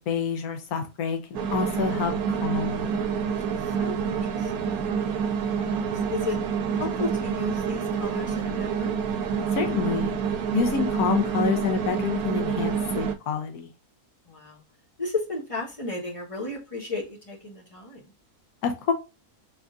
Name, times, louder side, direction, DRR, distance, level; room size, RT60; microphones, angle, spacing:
voice 1, 0.0-3.3 9.5-10.1 10.5-13.7 18.6-18.9, left 6 dB, 85° left, 1.2 m, -28 dB
sound 1, 1.3-13.1, right 6 dB, 85° right, 1.1 m, -27 dB
voice 2, 3.8-4.7 5.5-6.4 6.7-9.0 10.4-10.7 14.3-14.6 15.0-18.0, left 3 dB, 25° left, 1.0 m, -34 dB
3.5 x 3.5 x 2.5 m
omnidirectional pair, 1.5 m